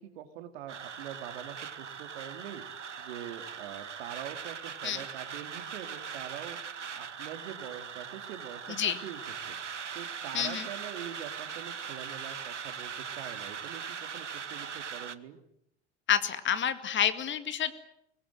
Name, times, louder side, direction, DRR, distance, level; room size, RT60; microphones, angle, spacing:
voice 1, 0.0-2.6 3.0-9.6 9.9-15.4, right 10 dB, 60° right, 8 dB, 3.0 m, -44 dB
sound 1, 0.7-15.1, right 6 dB, 85° right, 1.1 m, -40 dB
voice 2, 10.3-10.7 16.1-17.7, left 9 dB, 35° left, 11 dB, 2.2 m, -29 dB
24.0 x 20.5 x 9.4 m, 0.75 s
figure-of-eight pair, 75°, 35 cm